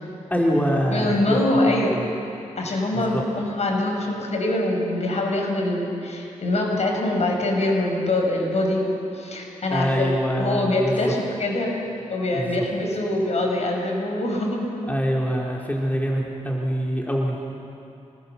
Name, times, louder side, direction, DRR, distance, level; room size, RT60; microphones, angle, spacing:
voice 1, 0.3-1.4 1.7-1.8 2.9-3.2 9.7-11.0 12.3-12.6 14.9-17.4, equal, 10° left, -2 dB, 3.5 m, -24 dB
voice 2, 0.9-2.0 2.6-11.8 12.1-14.6, left 1 dB, 60° left, 0 dB, 5.9 m, -24 dB
26.5 x 20.5 x 7.0 m, 2.7 s
cardioid pair, 70°, 13 cm